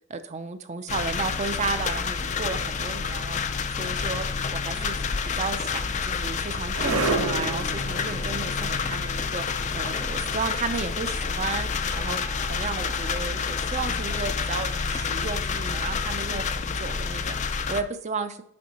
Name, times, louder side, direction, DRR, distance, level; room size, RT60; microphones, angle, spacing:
voice 1, 0.1-3.5 3.8-4.3 4.5-5.0 5.2-18.4, right 4 dB, 30° right, 10 dB, 0.5 m, -33 dB
sound 1, 0.9-17.8, left 5 dB, 35° left, 0.4 m, -29 dB
sound 2, 5.6-16.7, right 3 dB, 75° right, 0.7 m, -36 dB
9.6 x 3.8 x 4.1 m, 0.75 s
head